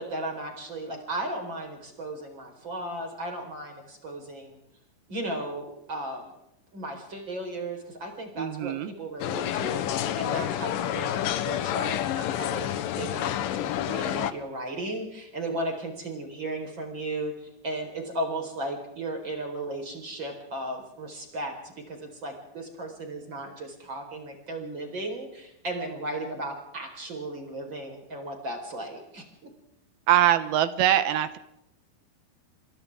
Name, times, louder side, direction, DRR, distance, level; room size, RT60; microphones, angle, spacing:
voice 1, 0.0-4.6 5.1-6.3 6.7-9.9 10.2-29.2, right 1 dB, 30° right, 2 dB, 4.8 m, -35 dB
voice 2, 8.4-8.9 30.1-31.4, right 11 dB, 75° right, 11 dB, 2.7 m, -23 dB
sound 1, 9.2-14.3, left 11 dB, 70° left, 2.3 m, -29 dB
28.5 x 25.5 x 3.7 m, 0.81 s
omnidirectional pair, 4.7 m